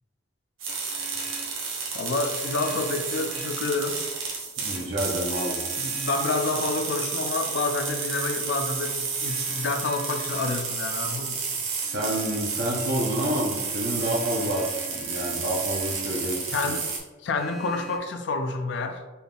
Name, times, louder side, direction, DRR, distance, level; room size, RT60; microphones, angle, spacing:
sound 1, 0.6-17.0, right 5 dB, 85° right, 0.9 m, -31 dB
Vehicle horn car horn honking, 0.7-1.6 2.3-3.8 4.6-6.6 9.2-10.6 11.8-12.5 13.9-16.1 17.3-18.0, right 1 dB, ahead, 0.6 m, -46 dB
voice 1, 1.9-4.0 5.8-11.4 16.5-16.9 17.2-19.0, left 3 dB, 65° left, 7 dB, 0.4 m, -28 dB
voice 2, 4.6-5.6 11.6-16.8, right 1 dB, 55° right, -2 dB, 0.8 m, -29 dB
4.2 x 3.4 x 2.4 m, 1.2 s
head